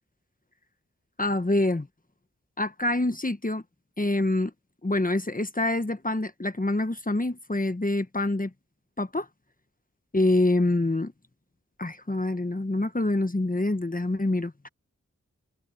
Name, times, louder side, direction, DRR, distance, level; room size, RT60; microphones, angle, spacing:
voice 1, 1.2-1.9 2.6-3.6 4.0-4.5 4.8-8.5 9.0-9.3 10.1-11.1 11.8-14.5, left 2 dB, 30° left, 1.3 m, -26 dB
wide cardioid pair, 40°, 30 cm